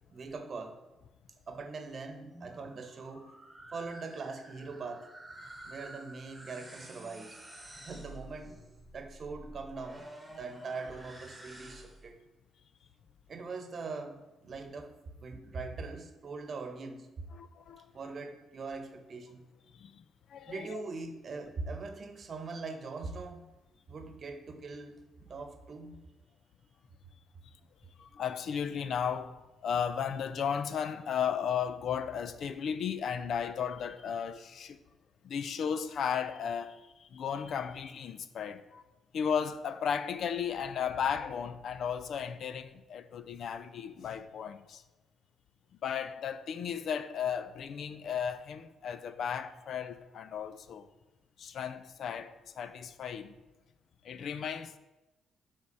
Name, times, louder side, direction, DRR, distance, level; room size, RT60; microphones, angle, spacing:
voice 1, 0.1-0.8 1.5-3.3 3.7-5.1 5.6-7.4 7.8-8.6 8.9-10.0 10.3-12.2 13.3-14.9 15.2-17.1 17.9-19.4 20.5-23.5 23.9-26.0, right 4 dB, 45° right, 1.0 m, -42 dB
sound 1, 2.2-12.2, right 1 dB, 10° right, 1.5 m, -50 dB
voice 2, 17.3-17.9 19.7-20.0 20.3-20.8 28.0-29.3 29.6-34.8 35.2-38.8 39.1-44.8 45.8-50.9 51.4-53.4 54.0-54.8, left 7 dB, 65° left, 0.5 m, -35 dB
9.5 x 3.6 x 5.5 m
cardioid pair, 90°, 0 cm